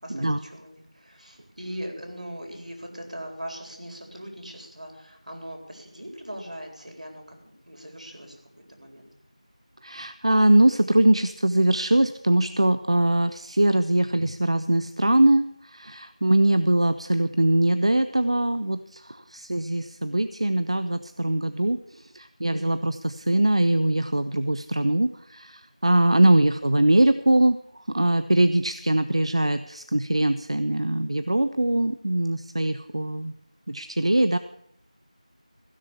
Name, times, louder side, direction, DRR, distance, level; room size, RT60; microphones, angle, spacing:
voice 1, 0.0-8.4 8.8-9.1 22.5-22.8, equal, 75° right, 3 dB, 4.2 m, -40 dB
voice 2, 9.8-33.3 33.7-34.4, right 1 dB, 50° right, 12 dB, 0.5 m, -22 dB
15.5 x 6.8 x 8.3 m, 0.75 s
figure-of-eight pair, 175°, 4 cm